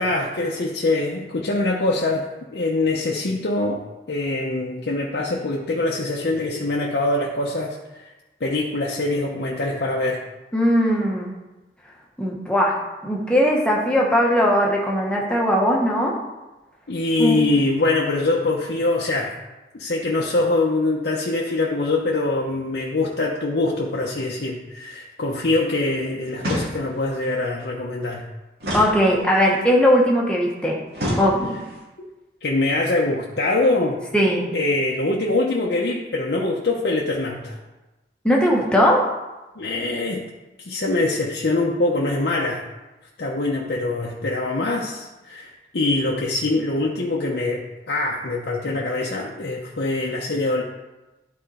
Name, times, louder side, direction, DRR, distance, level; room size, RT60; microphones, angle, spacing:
voice 1, 0.0-8.1 8.4-10.2 16.9-19.3 19.7-28.3 32.0-32.1 32.4-34.0 34.5-37.6 39.6-40.2 40.6-42.6 43.2-50.6, left 2 dB, 75° left, -2 dB, 0.8 m, -23 dB
voice 2, 10.5-11.3 12.2-16.2 17.2-17.4 28.7-30.8 31.2-31.6 34.1-34.4 38.2-39.0, equal, 5° left, -2 dB, 1.2 m, -19 dB
sound 1, 26.4-27.1 28.6-29.6 30.9-31.8, equal, 65° right, 2.4 m, -28 dB
11.0 x 4.3 x 4.2 m, 1.1 s
head